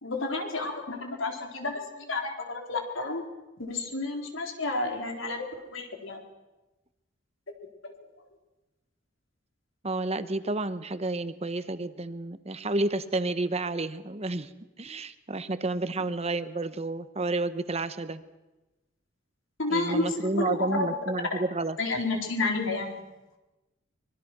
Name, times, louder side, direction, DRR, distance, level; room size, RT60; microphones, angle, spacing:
voice 1, 0.0-3.2 3.6-6.2 7.8-7.9 19.6-21.0 21.8-23.0, left 2 dB, 80° left, 3 dB, 4.1 m, -31 dB
voice 2, 9.8-14.5 14.8-18.2 19.7-21.8, right 2 dB, 30° right, 12 dB, 1.1 m, -30 dB
25.0 x 22.5 x 6.2 m, 1.1 s
head